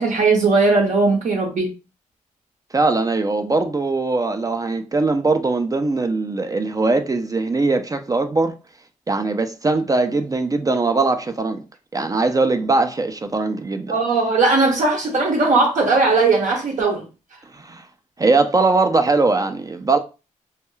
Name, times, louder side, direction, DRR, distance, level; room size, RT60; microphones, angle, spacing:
voice 1, 0.0-1.7 13.9-17.1, right 3 dB, 60° right, 0.6 m, -18 dB
voice 2, 2.7-8.5 9.1-11.6 11.9-14.0 17.5-17.9 18.2-20.0, right 3 dB, 25° right, 0.4 m, -20 dB
2.2 x 2.2 x 3.0 m
cardioid pair, 65°, 14 cm